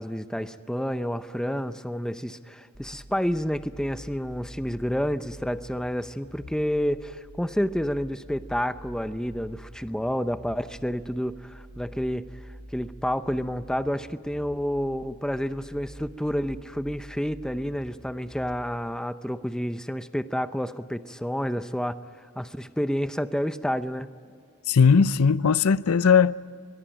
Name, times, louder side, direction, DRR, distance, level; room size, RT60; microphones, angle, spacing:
voice 1, 0.0-12.3 12.7-22.0 22.4-24.1, equal, 5° left, 0.7 m, -29 dB
sound 1, 2.7-18.7, equal, 35° right, 3.5 m, -46 dB
voice 2, 24.7-26.4, left 6 dB, 85° left, 0.6 m, -18 dB
23.5 x 21.5 x 8.9 m
head